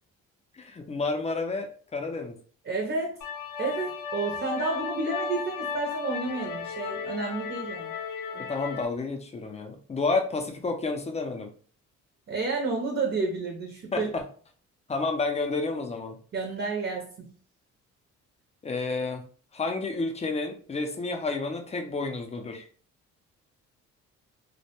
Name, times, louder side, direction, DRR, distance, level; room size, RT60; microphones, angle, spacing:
voice 1, 0.5-2.4 8.3-11.5 13.9-14.2 14.9-16.2 18.6-19.2 19.5-22.7, left 3 dB, 20° left, 5 dB, 0.5 m, -30 dB
voice 2, 2.7-3.2 3.6-7.9 12.3-14.1 16.3-17.3, right 3 dB, 40° right, 1 dB, 0.6 m, -30 dB
sound 1, 3.2-8.9, left 5 dB, 85° left, 0.6 m, -35 dB
2.1 x 2.1 x 2.9 m, 0.43 s
cardioid pair, 90°, 30 cm